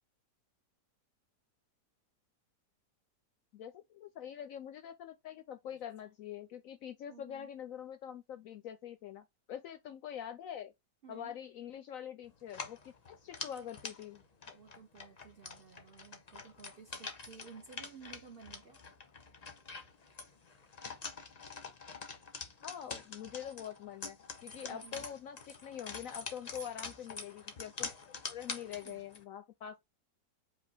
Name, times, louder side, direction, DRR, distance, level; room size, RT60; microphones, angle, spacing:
voice 1, 3.5-10.7 11.1-14.2 22.6-24.2 24.4-28.0 28.3-29.8, left 9 dB, 70° left, 0.8 m, -45 dB
voice 2, 7.1-7.5 11.0-11.3 14.5-18.8 24.6-25.1 28.8-29.0, right 6 dB, 50° right, 0.7 m, -54 dB
sound 1, 12.4-29.2, left 4 dB, 35° left, 0.6 m, -46 dB
5.3 x 2.3 x 4.2 m
omnidirectional pair, 1.8 m